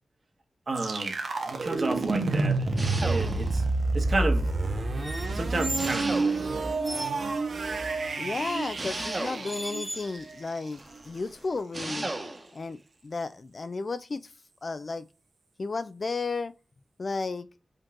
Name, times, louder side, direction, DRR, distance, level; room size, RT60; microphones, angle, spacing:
voice 1, 0.7-1.1 1.5-2.7 3.0-3.6 3.9-4.5 5.3-6.4, right 2 dB, 55° right, 1.4 m, -31 dB
sound 1, 0.8-10.6, right 3 dB, 75° right, 1.0 m, -29 dB
sound 2, 2.8-3.7 5.8-6.7 8.7-9.8 11.7-12.5, right 2 dB, 35° right, 1.2 m, -35 dB
sound 3, 5.0-6.0 6.6-7.2 8.6-8.7 9.4-10.3 10.7-11.6, equal, ahead, 0.8 m, -38 dB
voice 2, 8.2-12.1 12.5-12.8 13.0-14.3 14.6-15.0 15.6-16.5 17.0-17.5, left 3 dB, 55° left, 0.4 m, -33 dB
5.2 x 3.7 x 2.5 m
cardioid pair, 65°, 0 cm